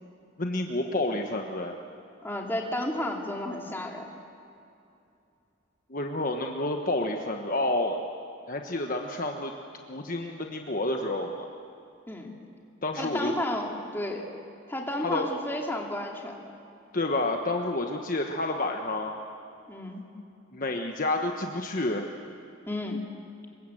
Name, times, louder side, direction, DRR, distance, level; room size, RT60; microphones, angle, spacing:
voice 1, 0.4-1.7 5.9-8.0 8.5-9.5 9.9-11.3 12.8-13.3 15.0-15.3 16.9-19.1 20.5-22.1, left 2 dB, 40° left, 3 dB, 1.3 m, -29 dB
voice 2, 2.2-4.1 12.1-12.3 13.0-14.3 14.7-16.4 19.7-20.1 22.7-23.0, left 1 dB, 10° left, 0 dB, 2.7 m, -32 dB
26.5 x 23.5 x 7.9 m, 2.7 s
head